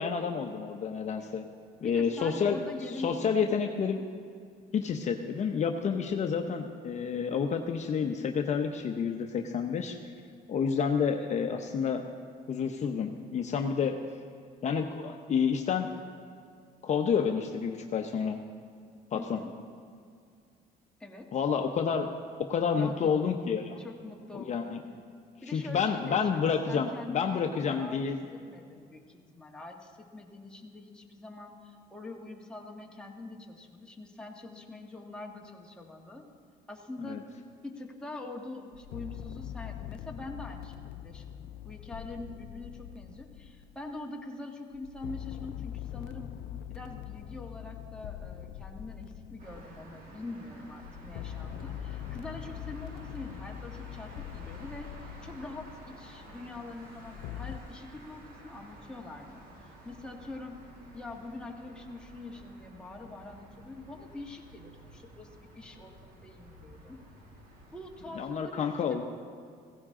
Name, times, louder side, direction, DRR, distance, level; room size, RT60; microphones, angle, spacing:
voice 1, 0.0-1.4 1.8-2.6 3.0-4.0 4.7-10.0 10.5-12.0 12.5-14.0 14.6-15.9 16.8-18.4 19.1-19.4 21.3-22.1 22.4-23.8 24.3-24.8 25.5-28.2 37.1-37.2 68.2-69.0, left 6 dB, 45° left, 4 dB, 0.8 m, -29 dB
voice 2, 1.8-3.9 19.1-19.5 21.0-21.3 22.7-23.3 23.8-24.8 25.4-28.0 28.3-36.2 36.7-37.2 37.6-46.3 46.7-54.9 55.2-60.5 60.9-67.0 67.7-69.0, left 2 dB, 5° left, -1 dB, 1.7 m, -44 dB
sound 1, 38.7-44.0 44.7-50.1 50.8-56.2 56.9-57.6, left 11 dB, 90° left, 0.4 m, -43 dB
sound 2, 49.4-68.2, right 1 dB, 60° right, 2.8 m, -52 dB
16.0 x 15.5 x 3.7 m, 2.2 s
cardioid pair, 110°, 17 cm